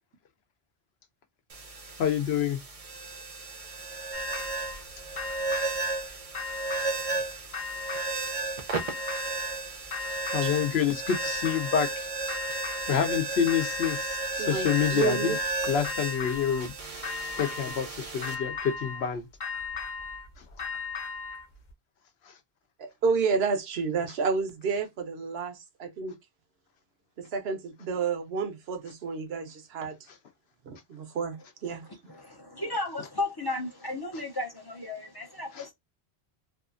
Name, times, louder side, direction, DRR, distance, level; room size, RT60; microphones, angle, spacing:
sound 1, 1.5-18.3, right 3 dB, 45° right, 0.6 m, -34 dB
voice 1, 2.0-2.6 10.3-12.1 12.9-15.4 15.7-16.7 17.4-19.3 35.5-35.7, left 8 dB, 75° left, 0.8 m, -27 dB
sound 2, 4.1-4.8 5.2-6.0 6.3-7.2 7.5-8.4 8.7-9.6 9.9-10.8 11.1-12.0 12.3-13.1 13.5-14.3 14.7-15.5 15.8-16.7 17.0-17.9 18.2-19.1 19.4-21.5, left 5 dB, 50° left, 0.8 m, -37 dB
voice 2, 14.4-15.4 22.8-26.2 27.2-30.0 30.7-31.4 31.6-31.8, right 5 dB, 75° right, 0.9 m, -30 dB
voice 3, 32.1-35.7, left 2 dB, 35° left, 0.4 m, -34 dB
2.7 x 2.3 x 2.4 m
omnidirectional pair, 1.1 m